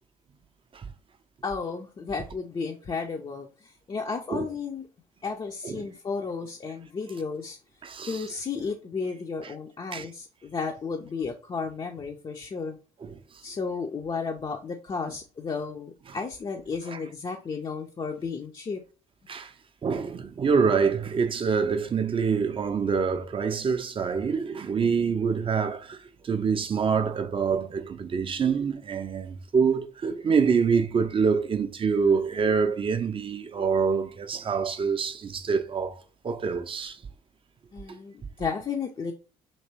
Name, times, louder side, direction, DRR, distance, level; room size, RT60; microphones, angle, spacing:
voice 1, 1.4-4.9 5.2-7.6 8.0-12.8 13.4-18.8 37.7-39.1, left 5 dB, 25° left, 0.5 m, -33 dB
voice 2, 7.8-8.2 9.4-9.5 9.9-10.1 13.0-13.2 16.9-17.0 19.3-19.5 19.8-37.0 37.9-38.0, right 5 dB, 30° right, 0.5 m, -26 dB
2.9 x 2.9 x 2.8 m
figure-of-eight pair, 50°, 18 cm